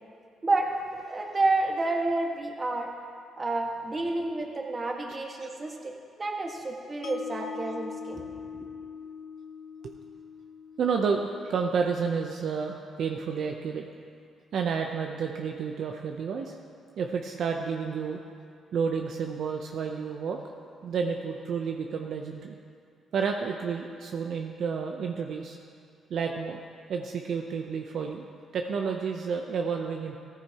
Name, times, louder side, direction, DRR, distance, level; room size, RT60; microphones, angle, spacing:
voice 1, 1.1-2.9 3.4-8.2 8.6-8.7, right 2 dB, 30° right, 1 dB, 1.6 m, -29 dB
Mallet percussion, 7.0-13.2, left 6 dB, 65° left, 0.6 m, -43 dB
voice 2, 10.8-13.8 14.5-16.6 17.0-18.2 18.7-20.4 20.8-22.6 23.1-25.6 26.1-26.6 26.9-28.3 28.5-30.1, right 5 dB, 65° right, 2 dB, 0.7 m, -30 dB
14.5 x 14.0 x 3.0 m, 2.3 s
cardioid pair, 90°, 0 cm